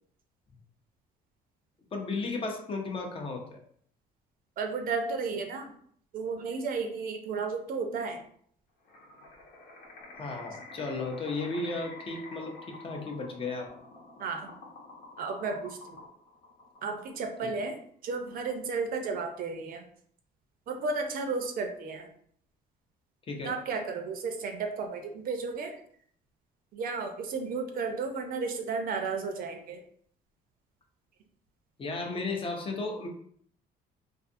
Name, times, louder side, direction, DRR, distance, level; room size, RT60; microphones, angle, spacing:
voice 1, 1.9-3.6 10.2-13.7 17.4-17.5 23.3-23.5 31.8-33.1, left 3 dB, 35° left, 2 dB, 0.5 m, -34 dB
voice 2, 4.6-5.7 6.1-8.2 14.2-14.5 15.2-16.0 16.8-17.7 18.0-19.8 20.7-22.1 23.4-25.7 26.7-29.8, right 4 dB, 60° right, 4 dB, 0.5 m, -33 dB
sound 1, 8.9-17.3, left 3 dB, 75° left, 0.9 m, -49 dB
2.6 x 2.4 x 2.5 m, 0.62 s
cardioid pair, 110°, 17 cm